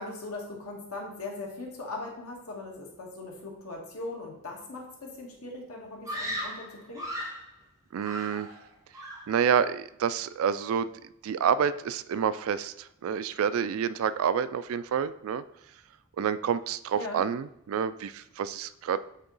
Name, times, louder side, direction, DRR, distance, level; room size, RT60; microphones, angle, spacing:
voice 1, 0.0-7.1 16.9-17.2, left 2 dB, 80° left, -1 dB, 1.5 m, -39 dB
Screaming, 6.0-7.5 8.0-8.7 8.9-9.4, equal, 15° right, 1.3 m, -36 dB
voice 2, 7.9-8.5 9.3-10.9 11.2-15.4 16.2-19.0, right 7 dB, 65° right, 15 dB, 0.3 m, -28 dB
8.2 x 2.9 x 3.9 m, 0.84 s
head